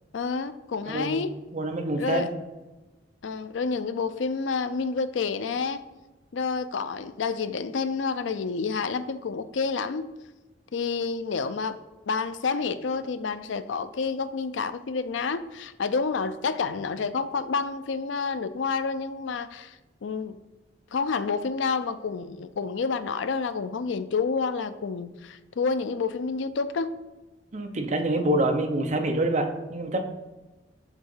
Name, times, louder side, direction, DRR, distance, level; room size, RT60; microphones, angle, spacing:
voice 1, 0.1-1.3 2.0-2.3 3.2-5.8 6.3-10.1 10.7-11.8 12.1-19.8 20.0-20.4 20.9-27.0, left 4 dB, 80° left, 12 dB, 0.5 m, -29 dB
voice 2, 0.9-1.3 1.5-2.3 27.5-30.0, right 1 dB, 40° right, 5 dB, 0.8 m, -26 dB
7.3 x 3.7 x 5.5 m, 1.1 s
head